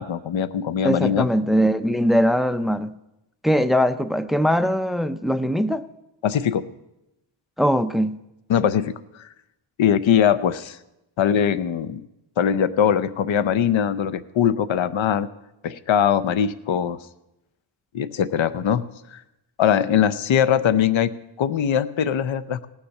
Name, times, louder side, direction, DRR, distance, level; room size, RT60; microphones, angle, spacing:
voice 1, 0.0-1.3 6.2-6.7 8.5-9.0 9.8-10.8 11.2-12.0 12.4-15.3 15.6-17.0 17.9-18.8 19.1-19.2 19.6-21.1 21.4-22.7, left 8 dB, 75° left, 15 dB, 0.7 m, -21 dB
voice 2, 0.8-2.9 3.4-5.9 7.6-8.2, equal, ahead, 11 dB, 0.4 m, -21 dB
17.5 x 7.1 x 6.5 m, 0.91 s
wide cardioid pair, 85°, 47 cm